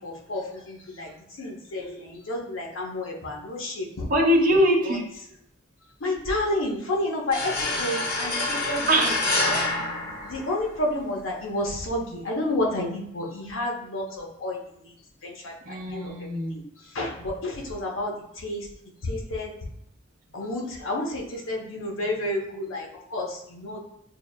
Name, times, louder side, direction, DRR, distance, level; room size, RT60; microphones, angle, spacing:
voice 1, 0.0-4.1 4.8-5.0 6.0-9.1 9.4-9.6 10.0-14.9 15.2-16.1 16.5-18.7 19.0-19.5 20.3-23.8, left 1 dB, 85° left, -1 dB, 0.9 m, -30 dB
voice 2, 4.1-5.1 8.9-9.2 15.6-16.6, equal, 45° right, 0 dB, 0.7 m, -22 dB
sound 1, 7.3-10.9, left 2 dB, 50° left, 0.9 m, -27 dB
6.6 x 2.3 x 2.2 m, 0.74 s
head